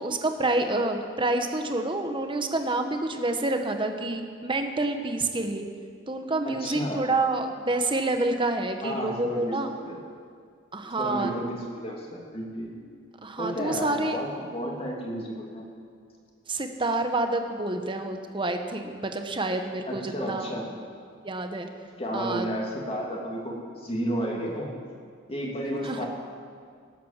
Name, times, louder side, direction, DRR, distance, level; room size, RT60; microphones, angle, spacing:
voice 1, 0.0-5.6 6.1-9.7 10.7-11.3 13.2-14.2 16.5-20.5 21.2-21.7 22.1-22.5 25.4-25.5 25.8-26.1, right 2 dB, 25° right, 6 dB, 1.1 m, -28 dB
voice 2, 6.4-7.0 8.8-10.0 10.8-12.7 13.4-15.7 19.9-20.6 22.0-24.7 25.3-26.1, equal, 30° left, -1 dB, 2.6 m, -32 dB
18.5 x 8.6 x 7.4 m, 2.1 s
head